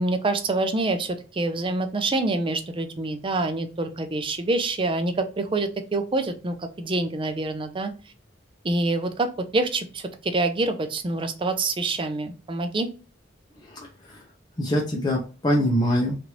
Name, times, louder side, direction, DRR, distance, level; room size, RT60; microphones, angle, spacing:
voice 1, 0.0-7.9 8.6-12.9, right 2 dB, 25° right, 7 dB, 0.5 m, -26 dB
voice 2, 13.6-14.2 14.6-16.2, equal, 20° left, -2 dB, 0.6 m, -24 dB
3.2 x 2.5 x 2.9 m, 0.36 s
head